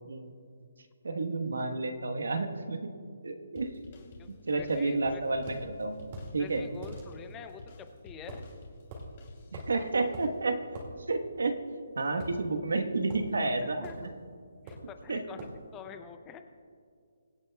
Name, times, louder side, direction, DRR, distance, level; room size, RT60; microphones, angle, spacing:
voice 1, 1.0-2.9 3.2-3.8 4.3-6.0 6.3-6.6 9.5-10.8 11.1-11.6 12.0-14.1 15.1-15.2, right 3 dB, 90° right, 6 dB, 1.2 m, -31 dB
sound 1, 3.6-9.9, left 3 dB, 40° left, 2.6 m, -51 dB
voice 2, 4.2-5.2 6.4-8.4 13.6-14.0 14.6-15.5 15.7-16.4, left 7 dB, 15° left, 8 dB, 0.6 m, -47 dB
sound 2, 5.5-5.6 6.1-6.3 6.8-7.0 8.3-8.5 8.9-9.1 9.5-9.8 10.1-10.3 10.7-10.9 12.2-12.7 13.1-13.3 13.8-14.1 14.7-14.9 15.4-15.6, right 1 dB, 30° right, 2.1 m, -42 dB
24.0 x 8.6 x 2.3 m, 2.2 s
hypercardioid pair, 165°, 0 cm